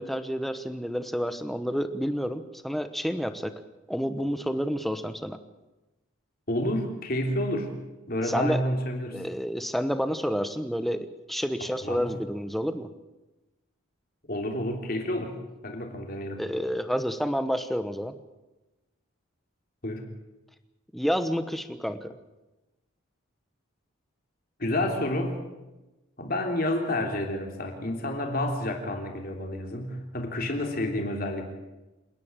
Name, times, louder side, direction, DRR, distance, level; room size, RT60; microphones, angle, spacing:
voice 1, 0.0-3.5 3.9-5.4 8.2-8.6 9.1-12.9 16.4-18.1 20.9-22.2, equal, ahead, 10 dB, 1.0 m, -29 dB
voice 2, 6.5-7.7 8.1-9.2 11.8-12.1 14.3-15.4 15.6-16.4 19.8-20.0 24.6-25.4 26.2-31.5, left 1 dB, 45° left, 3 dB, 3.3 m, -29 dB
28.0 x 10.5 x 8.9 m, 1.1 s
head